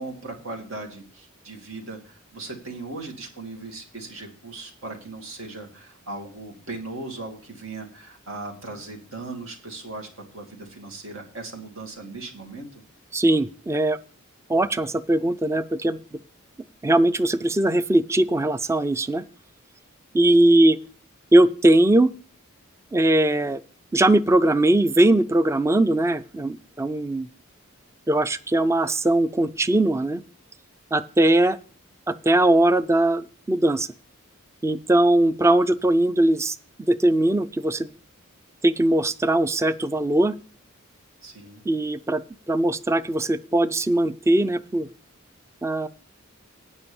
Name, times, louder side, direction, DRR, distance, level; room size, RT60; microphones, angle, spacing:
voice 1, 0.0-12.8 41.2-41.6, right 3 dB, 80° right, 1 dB, 2.5 m, -38 dB
voice 2, 13.1-14.0 14.5-16.2 16.8-19.2 20.1-20.8 21.3-22.1 22.9-23.6 23.9-27.3 28.1-30.2 30.9-31.6 32.1-33.9 34.6-36.6 36.9-37.9 38.6-40.4 41.7-42.2 42.5-44.9 45.6-45.9, right 1 dB, 15° right, 13 dB, 0.4 m, -20 dB
9.7 x 5.3 x 7.0 m, 0.41 s
head